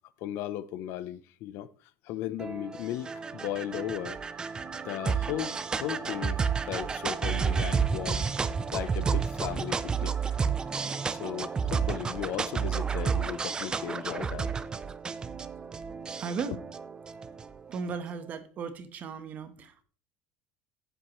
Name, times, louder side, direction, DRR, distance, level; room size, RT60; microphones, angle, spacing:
voice 1, 0.2-1.7 2.0-4.2 4.8-8.3 8.7-10.4 11.1-14.5, left 12 dB, 55° left, 0.7 m, -36 dB
sound 1, 2.4-17.9, right 6 dB, 15° right, 0.5 m, -31 dB
voice 2, 16.2-16.6 17.7-19.8, right 5 dB, 35° right, 1.2 m, -36 dB
14.5 x 7.9 x 3.1 m
cardioid pair, 150°, 5 cm